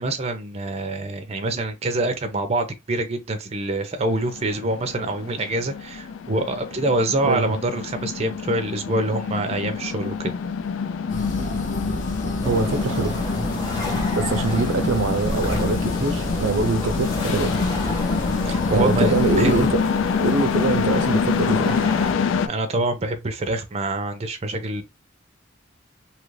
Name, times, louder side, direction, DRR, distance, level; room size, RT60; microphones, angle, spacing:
voice 1, 0.0-10.3 18.4-19.5 22.5-24.8, right 2 dB, 35° right, 0.5 m, -25 dB
sound 1, 4.1-22.5, left 6 dB, 85° left, 0.3 m, -26 dB
sound 2, 11.1-19.7, left 1 dB, 40° left, 0.7 m, -29 dB
sound 3, 12.4-22.1, left 1 dB, 20° left, 1.0 m, -31 dB
voice 2, 12.4-13.1 14.1-17.6 18.5-19.8 20.2-21.8, right 3 dB, 80° right, 0.6 m, -24 dB
2.9 x 2.4 x 3.1 m
head